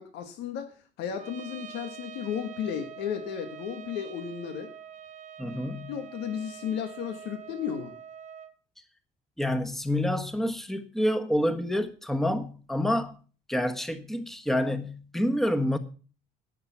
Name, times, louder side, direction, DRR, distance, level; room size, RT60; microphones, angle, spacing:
voice 1, 0.0-4.7 5.9-7.9, left 8 dB, 90° left, 1.6 m, -34 dB
Trumpet, 1.2-8.5, right 8 dB, 45° right, 1.4 m, -45 dB
voice 2, 5.4-6.0 9.4-13.2 13.5-15.8, left 1 dB, ahead, 1.4 m, -28 dB
17.5 x 6.9 x 5.8 m
cardioid pair, 110°, 17 cm